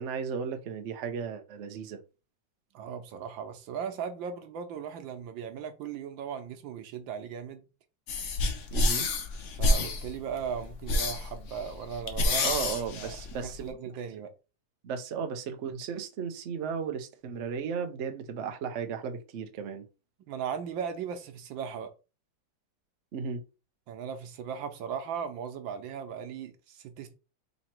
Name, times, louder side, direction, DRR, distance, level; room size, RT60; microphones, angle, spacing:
voice 1, 0.0-2.0 8.7-9.1 12.4-13.8 14.8-19.8 23.1-23.4, right 6 dB, 90° right, 0.6 m, -35 dB
voice 2, 2.7-7.6 9.6-12.6 13.0-13.2 13.4-14.3 20.3-21.9 23.9-27.1, right 7 dB, 75° right, 1.5 m, -37 dB
sound 1, 8.1-13.7, left 2 dB, 60° left, 0.8 m, -29 dB
4.1 x 2.9 x 4.3 m
omnidirectional pair, 2.2 m